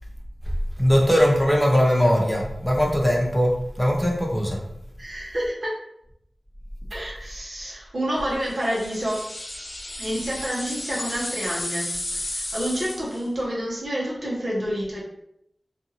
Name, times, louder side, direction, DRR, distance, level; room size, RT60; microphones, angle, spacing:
voice 1, 0.8-4.6, equal, 10° left, -1 dB, 0.6 m, -20 dB
voice 2, 5.0-5.7 6.9-9.2 10.0-15.0, equal, 60° right, -5 dB, 0.9 m, -28 dB
sound 1, 8.4-13.3, left 1 dB, 60° left, 0.6 m, -33 dB
2.6 x 2.6 x 2.7 m, 0.76 s
wide cardioid pair, 60°, 0 cm